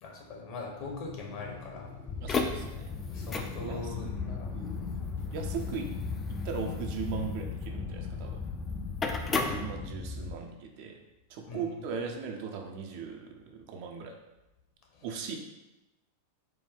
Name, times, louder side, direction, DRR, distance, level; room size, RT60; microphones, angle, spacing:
voice 1, 0.0-2.2 3.1-4.6 11.4-11.8 14.9-15.1, left 3 dB, 45° left, -1 dB, 0.9 m, -42 dB
sound 1, 0.8-6.3, left 5 dB, 75° left, 1.1 m, -47 dB
sound 2, 2.1-10.3, left 4 dB, 20° left, 0.4 m, -34 dB
voice 2, 2.2-2.9 3.2-3.3 3.6-4.1 4.5-4.8 5.3-5.9 6.3-8.4 9.5-11.0 11.3-14.1 15.0-15.4, right 6 dB, 50° right, 3 dB, 0.5 m, -38 dB
4.5 x 2.2 x 3.4 m, 0.97 s
figure-of-eight pair, 90°, 0 cm